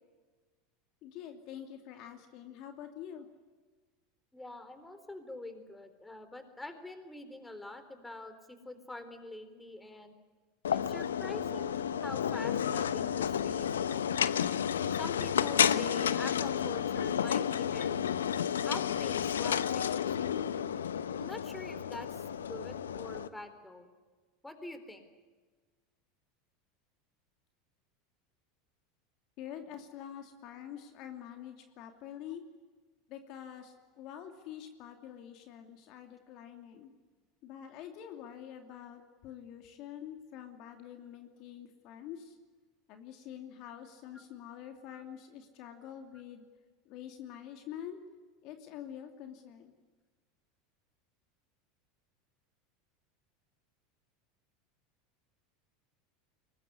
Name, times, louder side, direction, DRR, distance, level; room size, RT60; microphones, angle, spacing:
voice 1, 1.0-3.3 29.4-32.4 33.1-36.9 37.4-42.4 42.9-46.4 46.9-48.0 48.4-49.7, left 10 dB, 55° left, 5 dB, 2.7 m, -46 dB
voice 2, 4.3-10.1 10.7-11.8 12.0-14.2 14.9-18.1 18.6-20.5 21.1-23.9 24.4-25.1 44.1-44.2 44.9-45.0, left 2 dB, 10° left, 9 dB, 3.9 m, -45 dB
sound 1, 10.7-23.3, left 8 dB, 85° left, 0.9 m, -31 dB
23.5 x 20.0 x 9.7 m, 1.4 s
hypercardioid pair, 85°, 0 cm